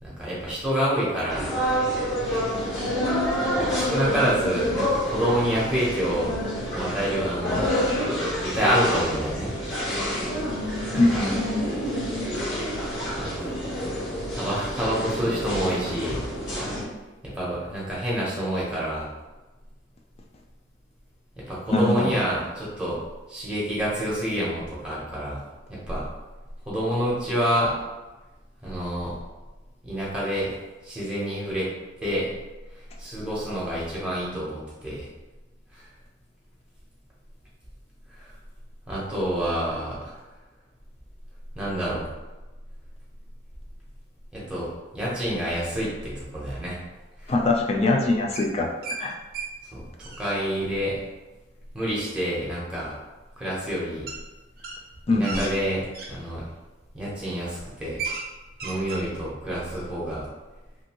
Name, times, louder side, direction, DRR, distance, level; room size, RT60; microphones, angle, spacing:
voice 1, 0.0-1.5 3.6-6.3 6.7-7.9 8.4-9.5 10.9-11.3 13.2-13.5 14.3-16.2 17.2-19.1 21.5-23.0 23.3-25.4 25.7-26.0 26.7-27.7 28.6-29.1 29.8-30.5 30.8-31.7 32.0-32.3 33.0-35.1 35.7-35.8 38.9-40.2 41.5-42.1 44.3-46.8 47.2-47.3 49.7-49.8 50.2-51.0 51.7-52.9 53.4-54.1 55.1-56.4 56.9-58.0 58.6-60.3, equal, 5° right, -7 dB, 0.8 m, -27 dB
sound 1, 1.3-16.8, equal, 75° left, 1.1 m, -28 dB
voice 2, 11.0-11.4 21.7-22.1 47.3-49.2 55.1-55.5, left 2 dB, 35° left, 2 dB, 0.3 m, -23 dB
sound 2, 48.3-49.0 49.3-49.5 49.8-50.2 52.5-52.6 54.1-54.2 54.6-56.1 56.8-57.0 57.4-57.5 57.8-58.3 58.5-59.0, right 4 dB, 50° right, 0.5 m, -34 dB
2.6 x 2.5 x 2.9 m, 1.1 s
head